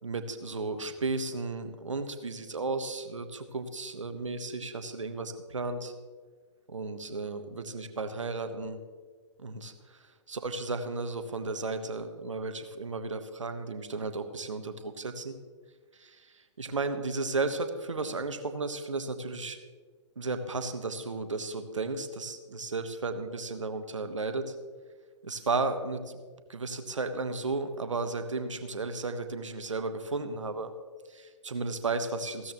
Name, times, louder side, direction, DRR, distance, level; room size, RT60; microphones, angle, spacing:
voice 1, 0.0-5.9 6.7-8.8 9.4-9.7 10.3-15.4 15.9-19.6 20.2-24.5 25.2-26.2 26.5-30.7 31.1-32.5, right 3 dB, 75° right, 8 dB, 1.2 m, -34 dB
16.0 x 13.0 x 3.0 m, 1.5 s
figure-of-eight pair, 115°, 16 cm